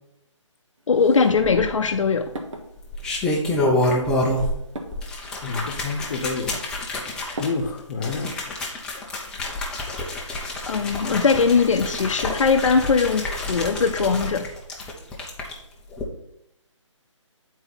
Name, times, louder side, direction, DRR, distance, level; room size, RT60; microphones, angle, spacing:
sound 1, 0.8-8.1, right 1 dB, 70° right, 1.3 m, -42 dB
voice 1, 0.9-2.3 10.7-14.5, left 5 dB, 75° left, 5 dB, 0.6 m, -20 dB
sound 2, 1.3-2.0 2.8-4.6 4.9-15.5 15.9-16.0, left 1 dB, 5° left, 0.5 m, -28 dB
voice 2, 5.4-6.6 7.4-8.3, left 4 dB, 35° left, 4 dB, 0.9 m, -28 dB
8.0 x 4.5 x 4.1 m, 0.80 s
hypercardioid pair, 155°, 16 cm